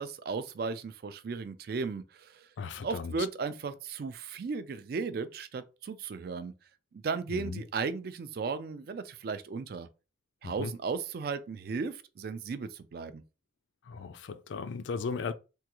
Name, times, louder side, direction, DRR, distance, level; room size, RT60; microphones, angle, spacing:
voice 1, 0.0-2.5 2.8-6.5 6.9-9.9 10.4-13.2, right 4 dB, 55° right, 0.3 m, -35 dB
voice 2, 2.6-3.1 7.3-7.6 10.4-10.7 13.9-15.3, left 5 dB, 75° left, 0.4 m, -36 dB
3.5 x 2.3 x 2.9 m
head